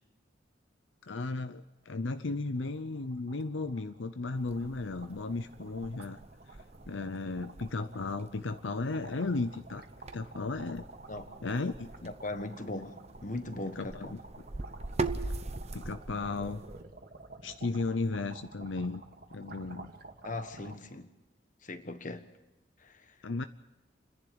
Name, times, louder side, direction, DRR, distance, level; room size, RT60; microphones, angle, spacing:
voice 1, 1.0-6.2 6.5-6.6 6.9-9.9 10.1-10.9 11.4-12.1 13.8-14.2 15.7-16.6 17.4-19.0 19.3-19.9 23.2-23.5, left 3 dB, 75° left, 0.7 m, -35 dB
sound 1, 1.7-1.8 2.2-2.3 2.5-20.8, right 3 dB, 55° right, 2.2 m, -51 dB
sound 2, 4.3-16.8, right 3 dB, 35° right, 0.9 m, -42 dB
voice 2, 12.0-14.2 20.2-21.1 21.6-22.2 22.8-23.2, left 2 dB, 45° left, 1.3 m, -39 dB
28.0 x 11.0 x 9.5 m
head